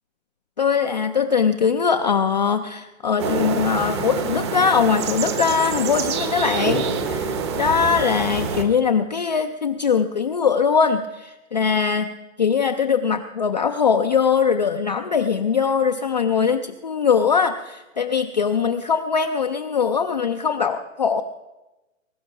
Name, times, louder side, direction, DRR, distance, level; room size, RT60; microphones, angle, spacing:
voice 1, 0.6-12.1 12.4-21.2, left 6 dB, 35° left, 6 dB, 0.4 m, -21 dB
sound 1, 3.2-8.6, right 5 dB, 20° right, 0.8 m, -26 dB
21.0 x 11.0 x 5.8 m, 1.0 s
hypercardioid pair, 165°, 40 cm